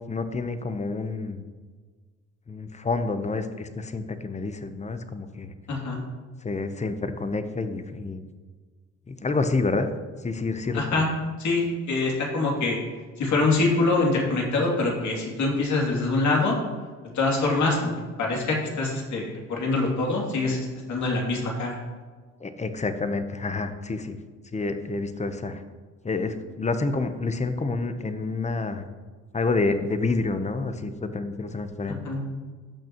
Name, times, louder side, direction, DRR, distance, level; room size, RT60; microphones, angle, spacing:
voice 1, 0.1-1.4 2.5-5.5 6.4-8.2 9.1-9.9 10.2-10.8 22.4-24.2 24.5-25.6 26.0-28.8 29.3-32.0, left 3 dB, 25° left, 9 dB, 0.8 m, -28 dB
voice 2, 5.7-6.0 10.7-11.1 11.4-12.8 13.2-16.6 17.1-17.9 18.2-21.8 31.9-32.2, left 3 dB, 70° left, -2 dB, 2.6 m, -24 dB
15.0 x 6.1 x 3.0 m, 1.5 s
cardioid pair, 90°, 30 cm